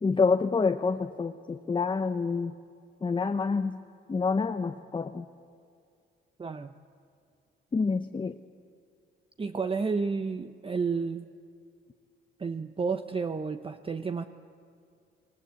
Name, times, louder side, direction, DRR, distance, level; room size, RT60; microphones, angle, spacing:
voice 1, 0.0-2.5 3.0-3.8 4.1-5.3 7.7-8.4, left 4 dB, 25° left, 8 dB, 0.8 m, -27 dB
voice 2, 6.4-6.8 9.4-11.3 12.4-14.2, right 4 dB, 25° right, 9 dB, 0.9 m, -31 dB
27.5 x 22.0 x 8.2 m, 2.4 s
cardioid pair, 90°, 20 cm